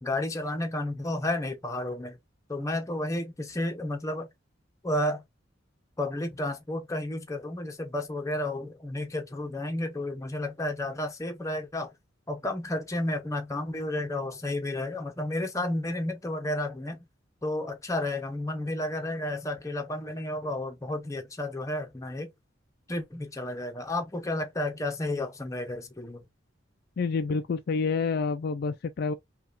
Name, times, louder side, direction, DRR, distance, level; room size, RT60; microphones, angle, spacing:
voice 1, 0.0-2.2 2.5-4.3 4.8-5.2 6.0-11.9 12.3-17.1 17.4-22.3 22.9-26.2, left 1 dB, 15° left, 0.8 m, -32 dB
voice 2, 27.0-29.1, left 4 dB, 50° left, 0.3 m, -28 dB
5.4 x 2.3 x 2.5 m
head